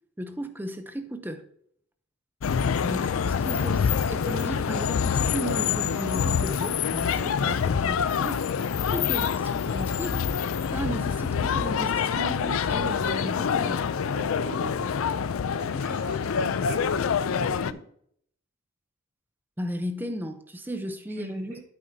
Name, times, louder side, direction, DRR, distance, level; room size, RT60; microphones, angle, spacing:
voice 1, 0.2-1.4 2.8-8.4 8.9-10.3 10.7-13.9 19.6-21.7, equal, 10° right, 0.6 m, -35 dB
sound 1, 2.4-17.7, left 6 dB, 75° left, 0.4 m, -26 dB
voice 2, 14.1-14.9 15.5-17.8 21.2-21.6, right 1 dB, 50° right, 3.2 m, -42 dB
8.9 x 8.6 x 2.7 m
head